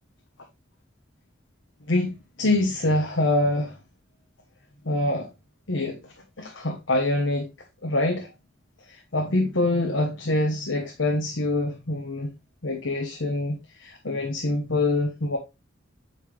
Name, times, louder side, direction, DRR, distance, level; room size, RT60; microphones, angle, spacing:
voice 1, 1.9-3.8 4.8-5.3 5.7-7.5 7.8-8.3 8.9-12.3 12.6-15.4, left 2 dB, 80° left, 1.1 m, -25 dB
8.7 x 4.3 x 3.3 m
head